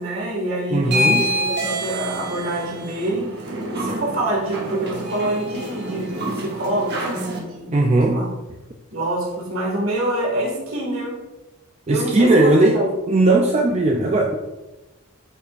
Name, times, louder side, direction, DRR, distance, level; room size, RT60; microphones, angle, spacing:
voice 1, 0.0-7.8 8.1-8.3 8.9-11.2 11.9-12.9, right 1 dB, 65° right, -2 dB, 2.0 m, -26 dB
voice 2, 0.7-1.2 7.7-8.2 11.9-12.7 13.1-14.4, right 2 dB, 30° right, 1 dB, 0.5 m, -17 dB
sound 1, 0.8-7.4, equal, 50° right, 1.1 m, -27 dB
8.3 x 5.4 x 2.6 m, 1.1 s
head